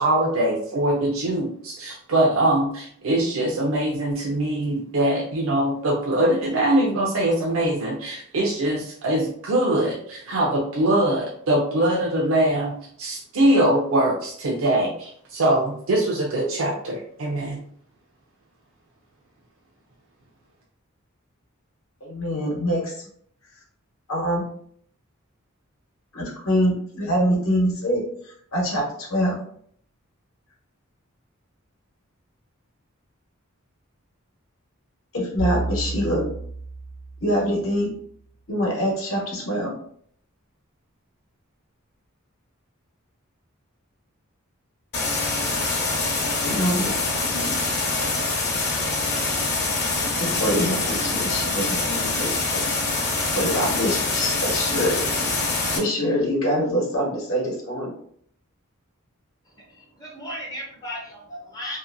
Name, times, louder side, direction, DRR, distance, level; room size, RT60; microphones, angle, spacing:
voice 1, 0.0-17.6, right 1 dB, 70° right, -2 dB, 0.5 m, -22 dB
voice 2, 22.0-23.0 24.1-24.4 26.1-28.0 28.5-29.4 35.1-36.3 37.2-37.9 38.5-39.7 46.4-47.6 50.2-52.7 53.3-55.1 55.7-57.9, equal, 70° left, -1 dB, 1.0 m, -25 dB
sound 1, 35.4-37.9, right 3 dB, 85° right, 1.0 m, -31 dB
sound 2, 44.9-55.8, left 3 dB, 55° left, 0.8 m, -25 dB
voice 3, 59.6-61.8, equal, 15° left, -2 dB, 0.5 m, -36 dB
2.7 x 2.5 x 2.5 m, 0.63 s
head